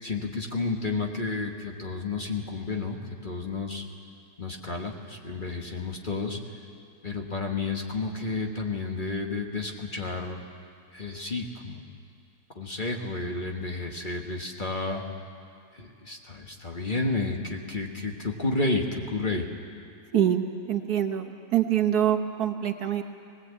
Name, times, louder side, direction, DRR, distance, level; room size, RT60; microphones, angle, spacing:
voice 1, 0.0-3.8 4.4-6.4 7.0-10.4 10.9-11.9 12.5-15.0 15.7-19.5, left 3 dB, 30° left, 1 dB, 1.5 m, -31 dB
voice 2, 20.1-23.0, right 10 dB, 70° right, 5 dB, 1.6 m, -25 dB
19.5 x 19.0 x 8.4 m, 2.4 s
omnidirectional pair, 1.8 m